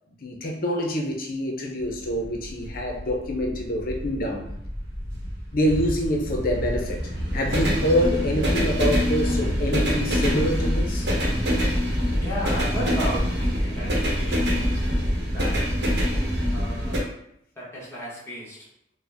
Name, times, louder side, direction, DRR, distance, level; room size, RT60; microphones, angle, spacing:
voice 1, 0.2-4.5 5.5-11.1, equal, 55° left, 1 dB, 0.6 m, -26 dB
sound 1, 1.8-17.0, equal, 70° right, 0.9 m, -25 dB
voice 2, 12.2-14.6 15.3-15.6 16.5-17.1 17.5-18.7, equal, 15° left, -7 dB, 1.0 m, -33 dB
3.9 x 2.0 x 3.4 m, 0.75 s
head